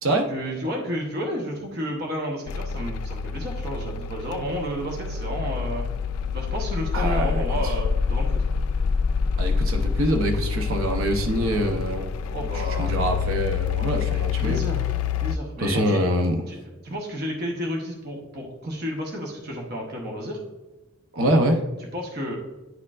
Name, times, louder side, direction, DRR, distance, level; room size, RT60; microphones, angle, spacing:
voice 1, 0.3-5.9 6.3-8.4 12.3-13.2 14.1-14.9 15.2-16.0 16.5-20.4 21.9-22.4, equal, 50° right, -1 dB, 1.0 m, -31 dB
sound 1, 2.5-15.4, left 5 dB, 90° left, 0.3 m, -26 dB
voice 2, 6.9-7.7 9.4-12.1 12.5-14.6 15.6-16.4 21.1-21.6, right 1 dB, 75° right, 4 dB, 0.8 m, -24 dB
9.5 x 4.5 x 2.4 m, 1.1 s
head